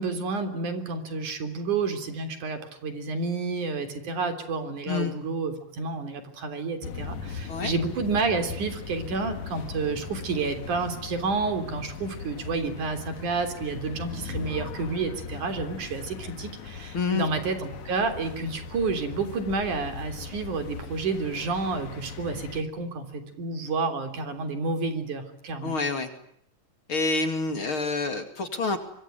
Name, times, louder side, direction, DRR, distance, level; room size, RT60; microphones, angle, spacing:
voice 1, 0.0-25.7, right 4 dB, 70° right, 8 dB, 4.8 m, -30 dB
sound 1, 6.8-22.6, left 6 dB, 70° left, 3.1 m, -39 dB
voice 2, 16.9-17.3 25.6-26.1 26.9-28.8, left 4 dB, 40° left, 8 dB, 3.1 m, -27 dB
25.0 x 24.5 x 9.1 m, 0.70 s
omnidirectional pair, 3.7 m